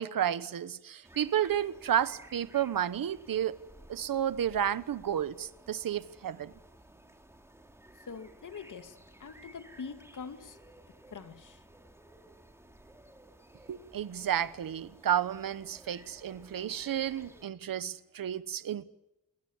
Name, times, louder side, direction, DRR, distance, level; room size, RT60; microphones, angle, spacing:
voice 1, 0.0-3.6 3.9-6.5 13.7-18.8, right 10 dB, 90° right, 1.2 m, -31 dB
sound 1, 1.0-17.5, right 1 dB, 10° right, 2.9 m, -56 dB
voice 2, 8.1-10.6 11.1-11.6, left 5 dB, 65° left, 2.2 m, -44 dB
27.5 x 22.5 x 7.3 m
wide cardioid pair, 140°, 33 cm